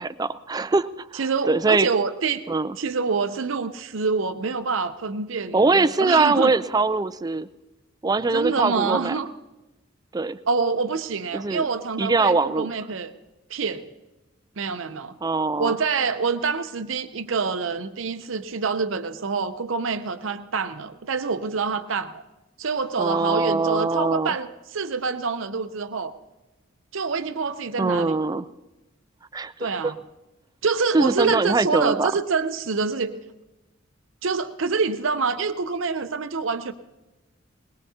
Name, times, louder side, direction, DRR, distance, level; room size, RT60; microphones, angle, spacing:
voice 1, 0.0-1.9 2.5-2.8 5.5-7.5 8.0-9.2 10.1-10.4 11.3-11.6 12.0-12.7 15.2-15.8 23.0-24.3 27.8-28.5 29.3-29.9 30.9-32.1, right 3 dB, 20° right, 14 dB, 0.4 m, -22 dB
voice 2, 1.1-2.4 2.8-6.5 8.3-9.3 10.5-13.1 13.5-13.9 14.6-15.2 15.6-22.2 22.6-26.1 26.9-28.2 29.6-30.0 30.6-33.1 34.2-36.7, right 5 dB, 75° right, 9 dB, 0.7 m, -26 dB
21.0 x 20.5 x 2.8 m, 1.1 s
head